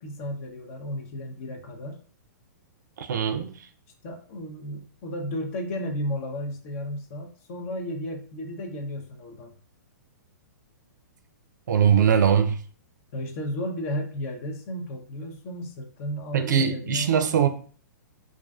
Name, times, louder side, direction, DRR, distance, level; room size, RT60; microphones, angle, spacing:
voice 1, 0.0-2.0 4.0-9.5 13.1-17.4, equal, 45° left, 0.6 m, -34 dB
voice 2, 3.0-3.7 11.7-12.6 16.3-17.5, right 8 dB, 75° right, 0.4 m, -21 dB
2.4 x 2.3 x 2.3 m
hypercardioid pair, 130°, 10 cm